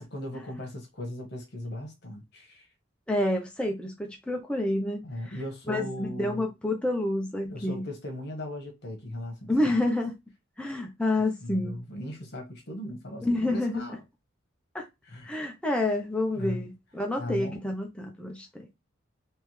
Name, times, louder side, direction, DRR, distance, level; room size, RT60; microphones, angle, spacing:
voice 1, 0.0-2.7 5.0-6.5 7.5-9.5 11.4-14.0 15.1-15.4 16.3-16.7 17.2-17.6, left 1 dB, 60° left, 1.4 m, -38 dB
voice 2, 3.1-5.4 5.7-7.8 9.5-10.1 10.6-11.8 13.2-13.8 14.7-14.8 15.2-18.7, left 1 dB, 5° left, 0.6 m, -28 dB
3.5 x 3.2 x 3.2 m
head